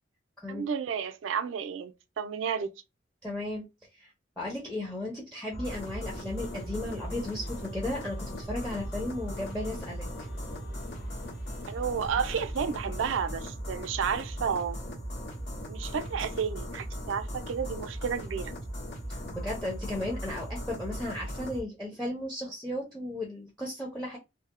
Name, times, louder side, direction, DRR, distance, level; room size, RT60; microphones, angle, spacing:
voice 1, 0.5-2.7 11.7-14.8 15.7-18.5, right 7 dB, 85° right, 0.4 m, -31 dB
voice 2, 3.2-3.7 3.9-10.1 19.1-24.2, left 1 dB, 5° left, 0.5 m, -35 dB
sound 1, 5.5-21.6, equal, 70° left, 1.6 m, -38 dB
sound 2, 5.8-13.3, left 1 dB, 55° left, 1.0 m, -49 dB
2.7 x 2.0 x 2.4 m
head